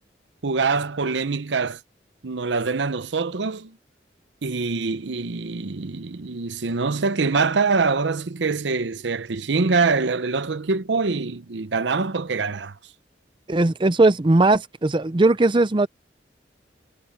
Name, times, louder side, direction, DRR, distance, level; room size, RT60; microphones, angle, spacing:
voice 1, 0.4-1.8 2.2-3.7 4.4-12.7, right 4 dB, 80° right, 0.8 m, -24 dB
voice 2, 13.5-15.9, right 2 dB, 25° right, 0.5 m, -18 dB
head